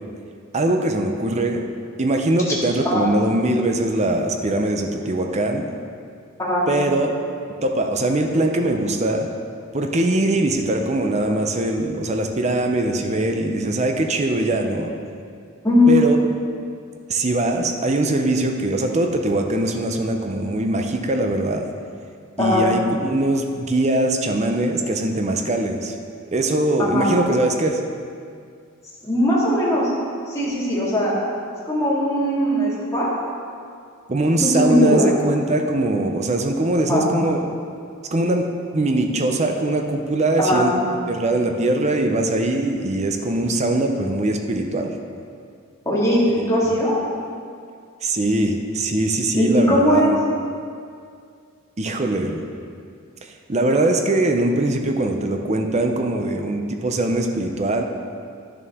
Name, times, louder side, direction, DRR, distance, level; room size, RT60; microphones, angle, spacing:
voice 1, 0.5-1.7 2.0-5.7 6.7-7.1 7.6-9.3 9.7-14.9 15.9-16.2 17.1-21.7 22.4-26.0 26.3-27.8 34.1-37.4 38.1-38.5 38.7-40.7 41.1-44.9 48.0-50.2 51.8-52.4 53.5-57.8, right 2 dB, 30° right, 3 dB, 0.6 m, -21 dB
voice 2, 26.8-27.1 29.0-29.9 30.3-31.1 31.6-33.1 34.4-35.1 36.8-37.1 40.4-40.6 45.9-47.0 49.4-50.1, left 1 dB, 15° left, -8 dB, 2.1 m, -19 dB
10.5 x 6.7 x 3.6 m, 2.3 s
head